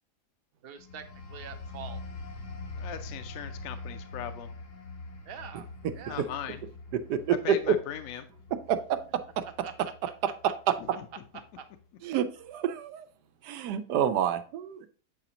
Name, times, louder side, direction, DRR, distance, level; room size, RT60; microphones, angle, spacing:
voice 1, 0.6-2.0 5.3-5.7 5.9-6.3 9.6-9.7 11.6-11.7, right 8 dB, 60° right, 7 dB, 0.6 m, -44 dB
sound 1, 0.8-11.1 11.6-11.8, left 3 dB, 85° left, 1.6 m, -44 dB
voice 2, 2.8-4.5 6.1-6.6 7.4-8.3 10.8-11.1, left 10 dB, 70° left, 8 dB, 0.9 m, -39 dB
voice 3, 6.9-7.4 7.7-7.8 8.7-9.0 9.4-9.5 12.0-13.1 13.4-14.9, right 9 dB, 90° right, 9 dB, 1.2 m, -28 dB
7.6 x 5.0 x 2.8 m, 0.39 s
omnidirectional pair, 1.7 m